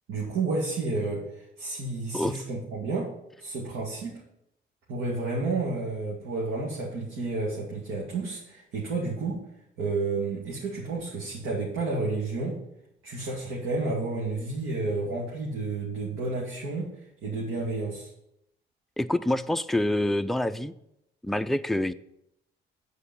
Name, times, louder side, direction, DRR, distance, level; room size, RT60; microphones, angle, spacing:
voice 1, 0.1-3.1 3.4-4.2 4.9-9.4 9.8-12.6 13.0-16.9 17.2-18.1, right 3 dB, 85° right, -4 dB, 2.1 m, -31 dB
voice 2, 19.0-20.7 21.2-21.9, left 1 dB, ahead, 10 dB, 0.4 m, -26 dB
8.2 x 4.7 x 7.0 m, 0.79 s
cardioid pair, 90°, 20 cm